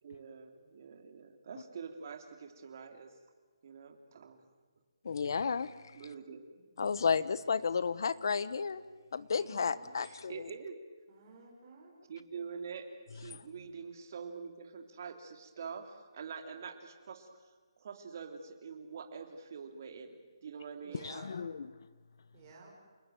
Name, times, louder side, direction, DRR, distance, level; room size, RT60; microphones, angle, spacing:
voice 1, 0.0-3.1 3.6-4.5 5.9-6.5 10.0-10.8 12.1-12.8 13.1-17.3 17.8-21.1, right 6 dB, 40° right, 6 dB, 3.2 m, -45 dB
voice 2, 5.0-6.0 6.8-8.8 9.1-10.5 13.3-13.4 20.9-21.7, left 5 dB, 55° left, 16 dB, 1.2 m, -33 dB
voice 3, 9.3-9.9 11.1-11.9 20.8-21.2 22.3-22.7, right 4 dB, 25° right, -3 dB, 6.1 m, -54 dB
28.5 x 18.5 x 9.2 m, 1.4 s
hypercardioid pair, 170°, 3 cm